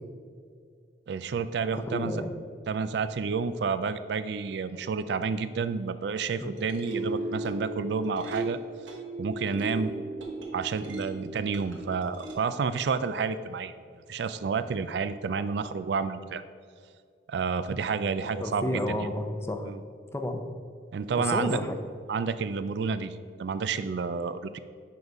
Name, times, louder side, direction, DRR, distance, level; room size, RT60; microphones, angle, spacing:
voice 1, 1.1-2.1 2.7-8.6 9.2-9.9 10.5-13.7 14.1-16.4 17.3-19.0 19.6-19.8 20.9-21.6 22.1-24.6, right 5 dB, 65° right, 13 dB, 0.3 m, -30 dB
voice 2, 1.7-2.3 6.4-6.8 18.4-19.7 20.1-20.5 21.2-21.8, left 1 dB, 15° left, 5 dB, 0.5 m, -31 dB
sound 1, 6.4-12.3, right 1 dB, 90° right, 1.3 m, -36 dB
10.5 x 4.0 x 4.6 m, 2.1 s
head